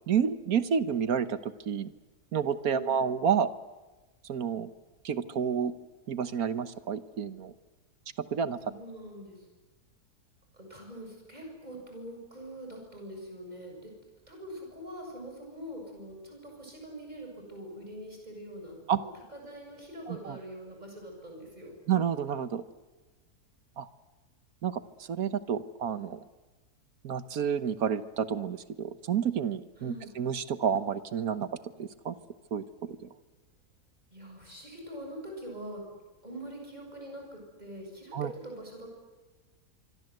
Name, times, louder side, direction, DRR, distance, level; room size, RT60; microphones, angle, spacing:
voice 1, 0.1-1.9 2.3-3.5 4.2-4.7 5.0-5.7 6.1-7.5 8.3-8.6 18.9-19.0 20.1-20.4 21.9-22.6 23.8-23.9 24.6-24.8 25.1-26.2 27.0-31.5 31.8-32.1 32.5-33.0 38.1-38.3, right 7 dB, 65° right, 13 dB, 1.5 m, -30 dB
voice 2, 2.6-3.1 8.6-9.4 10.5-13.9 14.3-21.7 29.8-30.1 34.1-35.8 36.2-39.0, right 1 dB, 25° right, 1 dB, 7.4 m, -44 dB
25.0 x 25.0 x 7.9 m, 1.2 s
omnidirectional pair, 1.7 m